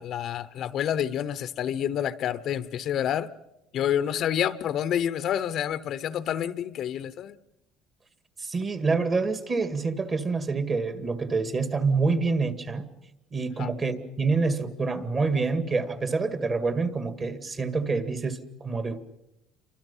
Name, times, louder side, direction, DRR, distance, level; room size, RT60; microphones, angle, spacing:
voice 1, 0.0-3.3 3.7-7.4 13.6-13.7, left 10 dB, 55° left, 0.9 m, -28 dB
voice 2, 8.4-12.9 13.3-19.0, right 4 dB, 30° right, 2.2 m, -27 dB
29.5 x 25.0 x 5.7 m
cardioid pair, 140°, 0 cm